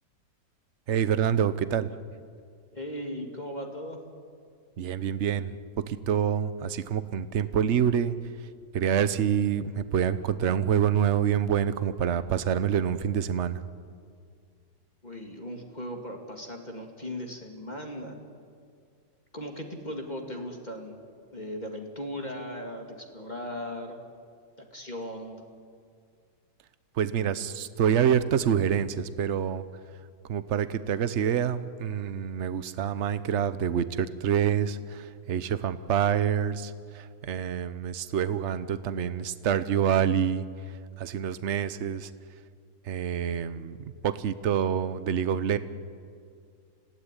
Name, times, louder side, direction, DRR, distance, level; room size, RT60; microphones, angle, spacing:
voice 1, 0.9-1.9 4.8-5.6 5.9-8.2 8.7-13.6 26.9-29.6 30.3-42.1 42.8-43.8 44.0-45.6, right 8 dB, 50° right, 13 dB, 0.9 m, -27 dB
voice 2, 2.7-4.0 15.0-18.2 19.3-21.0 21.3-24.0 24.6-25.4, equal, 25° left, 2 dB, 2.4 m, -38 dB
27.0 x 16.5 x 10.0 m, 2.2 s
omnidirectional pair, 2.0 m